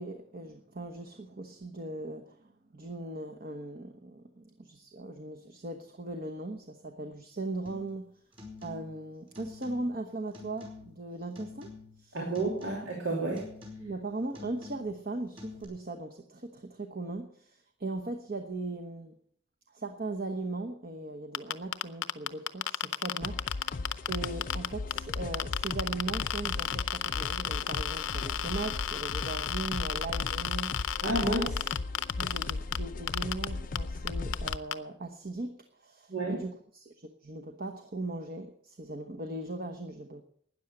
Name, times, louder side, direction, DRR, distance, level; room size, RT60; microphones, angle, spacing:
voice 1, 0.0-8.2 8.6-11.7 12.0-12.2 13.8-19.2 19.7-30.9 32.2-40.2, right 2 dB, 50° right, 5 dB, 1.1 m, -39 dB
sound 1, 7.7-8.0 8.3-9.0 9.3-10.0 10.3-11.0 11.4-12.1 12.3-13.0 13.4-14.0 14.3-15.0 15.4-15.6, left 4 dB, 25° right, 4.6 m, -47 dB
voice 2, 12.1-13.5 31.0-31.6 36.1-36.4, right 2 dB, 85° right, -1 dB, 2.8 m, -30 dB
sound 2, 21.3-24.7 24.9-32.8 33.1-33.4 33.7-33.8 34.1-34.7, left 10 dB, 90° left, 0.7 m, -31 dB
sound 3, 23.2-34.6, left 3 dB, 45° left, 0.5 m, -37 dB
12.5 x 9.9 x 7.7 m, 0.63 s
head